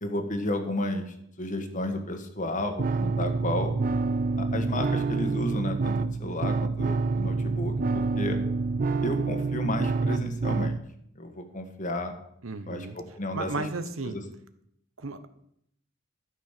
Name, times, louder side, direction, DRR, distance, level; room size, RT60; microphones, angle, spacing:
voice 1, 0.0-3.7 4.4-8.4 9.0-10.8 11.2-12.1 12.7-13.5 14.0-14.2, left 1 dB, 40° left, 6 dB, 1.6 m, -32 dB
sound 1, 2.8-10.8, right 3 dB, 45° right, 0.4 m, -27 dB
voice 2, 12.4-12.9 13.3-14.2 15.0-15.3, right 3 dB, 85° right, 11 dB, 1.0 m, -34 dB
13.0 x 6.4 x 6.7 m, 0.73 s
head